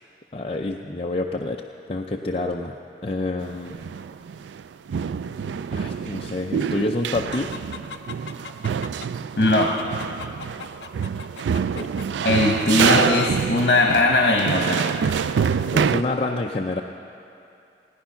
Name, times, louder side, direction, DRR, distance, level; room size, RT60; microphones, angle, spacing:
voice 1, 0.3-1.6 1.9-3.8 5.7-7.6 11.6-11.9 15.7-16.8, left 2 dB, 30° left, 1 dB, 0.5 m, -28 dB
sound 1, 3.4-4.6 4.9-16.0, right 7 dB, 85° right, 0.3 m, -26 dB
Chicken rooster, 7.3-9.1 9.4-12.0 12.4-13.3, left 6 dB, 80° left, 0.6 m, -31 dB
voice 2, 9.4-9.7 12.2-14.8, left 2 dB, 60° left, 1 dB, 1.1 m, -19 dB
17.5 x 10.0 x 5.8 m, 2.7 s
head